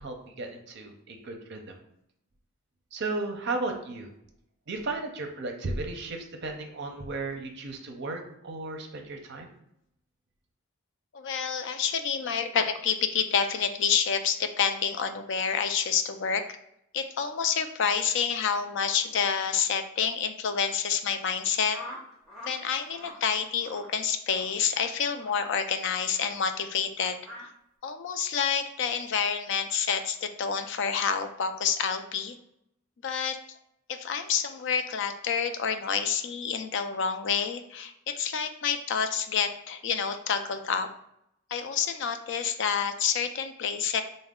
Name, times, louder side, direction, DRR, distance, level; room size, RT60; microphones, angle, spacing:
voice 1, 0.0-1.8 2.9-4.1 4.7-9.5, right 3 dB, 50° right, 3 dB, 0.6 m, -35 dB
voice 2, 11.1-16.5 16.9-21.8 22.5-27.5 27.8-32.4 33.0-33.6 33.9-40.9 41.5-44.0, left 7 dB, 55° left, 8 dB, 0.3 m, -28 dB
sound 1, 21.7-22.6 22.9-23.2 23.6-23.9 24.3-24.5 25.1-25.4 26.1-26.3 27.2-27.5, left 1 dB, ahead, 0.7 m, -44 dB
4.0 x 2.1 x 3.6 m, 0.77 s
head